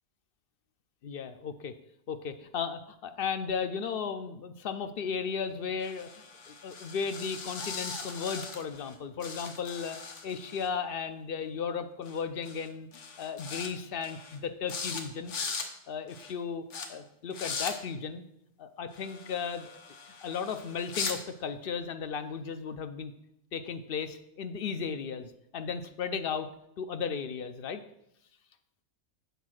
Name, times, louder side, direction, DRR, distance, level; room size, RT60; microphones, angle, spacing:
voice 1, 1.0-1.7 2.1-6.1 6.5-10.0 10.2-15.3 15.9-16.6 16.9-18.2 18.6-19.8 20.2-23.1 23.5-26.5 26.8-27.8, left 6 dB, 60° left, 9 dB, 0.7 m, -35 dB
sound 1, 5.8-8.9 9.2-10.7 12.0-12.2 12.4-12.7 12.9-13.7 14.0-14.4 14.7-15.0 15.3-15.7 16.1-16.3 16.7-16.9 17.3-17.7 18.9-21.2, left 5 dB, 90° left, 1.3 m, -39 dB
8.1 x 4.1 x 6.2 m, 0.77 s
omnidirectional pair, 1.2 m